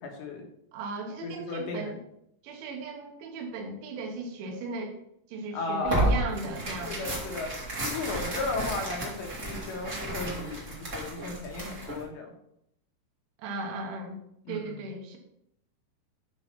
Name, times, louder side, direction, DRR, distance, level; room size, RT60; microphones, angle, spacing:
voice 1, 0.0-0.5 1.2-1.9 5.5-6.1 6.9-7.5 7.8-12.3 14.5-14.8, left 3 dB, 75° left, 1 dB, 3.5 m, -35 dB
voice 2, 0.7-2.0 2.4-5.0 5.3-7.3 13.4-14.2 14.5-15.2, right 3 dB, 80° right, 2 dB, 3.7 m, -37 dB
Tearing, 5.8-12.0, right 1 dB, 50° right, 0.8 m, -32 dB
12.0 x 4.0 x 5.4 m, 0.76 s
omnidirectional pair, 5.4 m